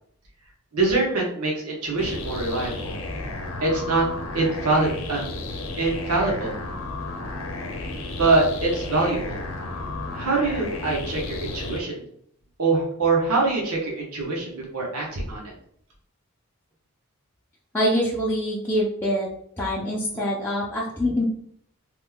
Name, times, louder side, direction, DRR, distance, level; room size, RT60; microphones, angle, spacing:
voice 1, 0.7-3.0 3.6-4.1 4.3-5.3 5.8-6.6 8.2-9.4 10.1-12.1 12.6-15.5, right 3 dB, 90° right, -2 dB, 0.9 m, -24 dB
sound 1, 2.0-11.8, left 2 dB, 65° left, 0.6 m, -33 dB
voice 2, 17.7-19.3 19.6-21.2, equal, 10° left, -6 dB, 0.4 m, -24 dB
3.1 x 2.2 x 3.5 m, 0.64 s
head